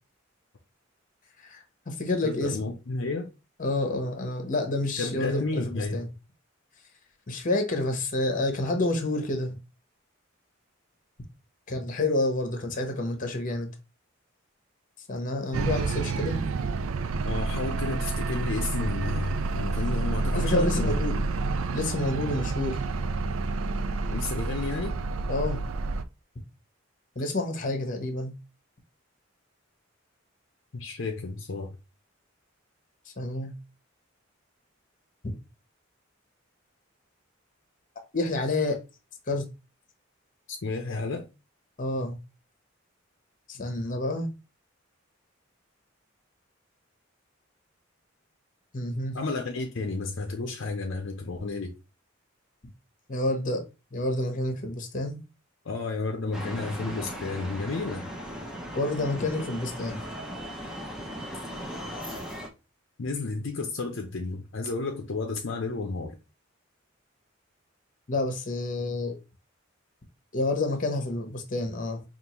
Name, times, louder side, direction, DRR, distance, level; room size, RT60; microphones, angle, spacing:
voice 1, 1.4-2.7 3.6-6.1 7.3-9.6 11.7-13.7 15.1-16.4 20.3-21.2 21.7-22.8 25.3-25.6 27.1-28.3 33.2-33.5 35.2-35.4 38.1-38.8 39.3-39.5 41.8-42.2 43.5-44.3 48.7-49.2 53.1-53.6 53.9-55.2 58.7-60.0 68.1-69.2 70.3-72.0, left 2 dB, 40° left, 0.9 m, -29 dB
voice 2, 2.2-3.3 5.0-6.1 17.2-21.2 24.1-25.0 30.7-31.7 40.5-41.2 49.1-51.7 55.6-58.1 63.0-66.2, left 3 dB, 60° left, 0.6 m, -32 dB
sound 1, 15.5-26.0, right 3 dB, 90° right, 0.4 m, -29 dB
sound 2, 56.3-62.5, equal, 5° right, 0.7 m, -37 dB
5.2 x 2.5 x 3.0 m
head